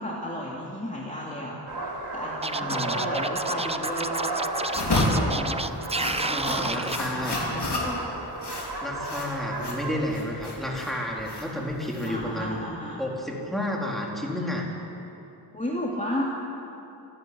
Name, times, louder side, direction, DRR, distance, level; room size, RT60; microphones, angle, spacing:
voice 1, 0.0-1.6 2.1-4.3 4.9-5.6 6.0-6.7 7.0-8.0 12.1-13.0 15.5-16.2, equal, 15° left, -5 dB, 2.7 m, -33 dB
sound 1, 1.7-10.0, right 2 dB, 65° right, 3.0 m, -34 dB
Scratching (performance technique), 2.4-7.0, right 3 dB, 15° right, 0.5 m, -31 dB
voice 2, 2.5-3.0 6.3-7.4 8.8-12.6 13.0-14.7, left 1 dB, ahead, -2 dB, 3.7 m, -31 dB
sound 2, 4.7-12.6, left 2 dB, 65° left, 3.9 m, -31 dB
27.0 x 11.5 x 9.5 m, 2.9 s
wide cardioid pair, 115°, 43 cm